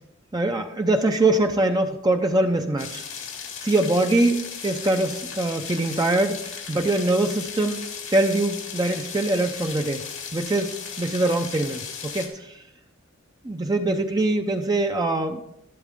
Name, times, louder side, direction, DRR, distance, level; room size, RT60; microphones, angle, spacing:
voice 1, 0.3-3.0 3.6-7.8 8.1-10.0 10.3-12.5 13.4-15.4, right 2 dB, 20° right, 4 dB, 0.6 m, -23 dB
sound 1, 2.8-12.3, left 6 dB, 90° left, 2.3 m, -36 dB
12.0 x 11.5 x 3.6 m, 0.79 s
head